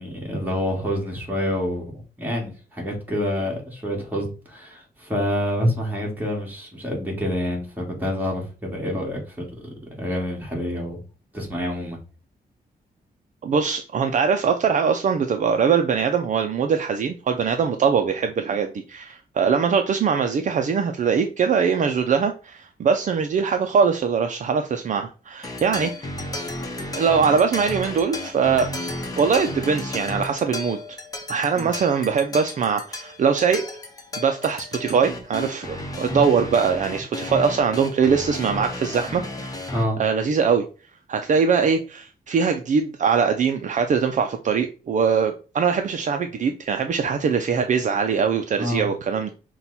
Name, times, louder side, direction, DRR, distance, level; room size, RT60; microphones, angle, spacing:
voice 1, 0.0-9.7 10.0-11.0 11.3-12.0 31.5-31.7 39.7-40.0 48.6-48.9, equal, 10° right, 1.8 m, -27 dB
voice 2, 13.4-26.1 27.0-28.7 29.2-31.0 31.3-33.6 34.2-39.7 40.0-40.6 41.1-49.3, right 6 dB, 50° right, 0.4 m, -22 dB
sound 1, 25.4-39.8, left 2 dB, 20° left, 0.9 m, -33 dB
5.7 x 2.3 x 4.0 m
wide cardioid pair, 135°, 16 cm